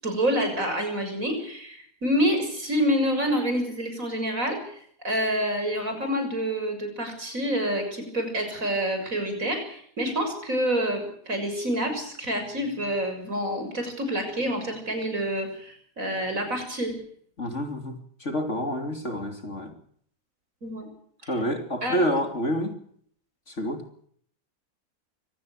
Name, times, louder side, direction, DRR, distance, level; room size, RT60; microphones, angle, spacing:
voice 1, 0.0-4.6 5.0-17.0 20.6-20.9 21.8-22.0, equal, 55° right, 7.1 m, -27 dB
voice 2, 17.4-19.7 21.3-22.8 23.5-23.8, equal, 45° left, 3.4 m, -28 dB
24.5 x 18.5 x 6.6 m
omnidirectional pair, 1.7 m